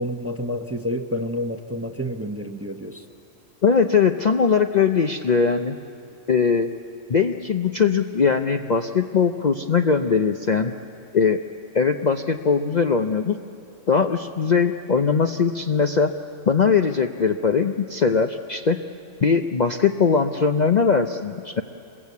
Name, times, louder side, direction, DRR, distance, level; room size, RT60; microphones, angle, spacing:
voice 1, 0.0-3.0, equal, 15° right, 6 dB, 0.8 m, -29 dB
voice 2, 3.6-5.8 6.3-6.7 7.1-10.7 11.1-11.4 11.7-13.4 13.9-16.1 16.5-18.8 19.2-21.6, left 5 dB, 45° left, 5 dB, 0.6 m, -20 dB
27.0 x 22.0 x 8.3 m, 2.9 s
omnidirectional pair, 1.3 m